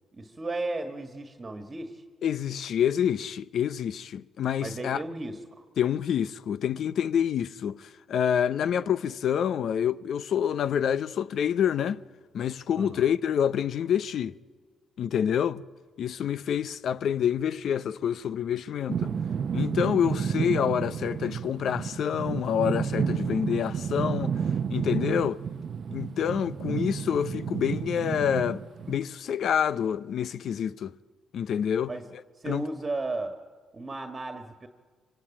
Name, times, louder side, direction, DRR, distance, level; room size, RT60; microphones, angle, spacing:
voice 1, 0.1-2.0 4.6-5.6 12.7-13.1 31.9-32.1 32.4-33.4 33.7-34.7, right 2 dB, 30° right, 1.7 m, -35 dB
voice 2, 2.2-5.0 5.8-12.0 12.3-14.3 15.0-15.6 16.0-19.1 19.5-24.4 24.7-25.4 25.9-28.6 28.9-31.0 31.3-32.6, left 8 dB, 65° left, 0.7 m, -27 dB
sound 1, 18.9-29.0, right 7 dB, 55° right, 0.7 m, -31 dB
24.5 x 24.0 x 8.9 m
cardioid pair, 90°, 0 cm